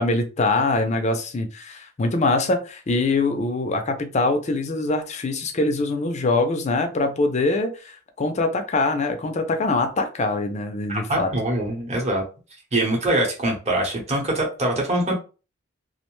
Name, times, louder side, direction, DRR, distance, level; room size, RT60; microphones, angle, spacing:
voice 1, 0.0-11.3, left 2 dB, 35° left, 6 dB, 0.4 m, -23 dB
voice 2, 10.9-12.2 12.7-15.1, right 1 dB, 35° right, -1 dB, 0.8 m, -23 dB
2.4 x 2.1 x 3.0 m, 0.34 s
head